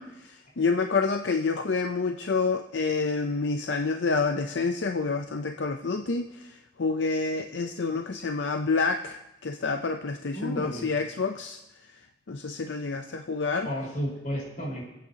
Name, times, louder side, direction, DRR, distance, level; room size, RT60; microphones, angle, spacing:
voice 1, 0.0-6.5 6.8-11.6 12.3-13.7, left 4 dB, 80° left, 5 dB, 0.6 m, -28 dB
voice 2, 10.3-10.9 13.6-14.8, equal, 50° left, -3 dB, 4.6 m, -32 dB
25.5 x 8.7 x 2.9 m, 0.91 s
head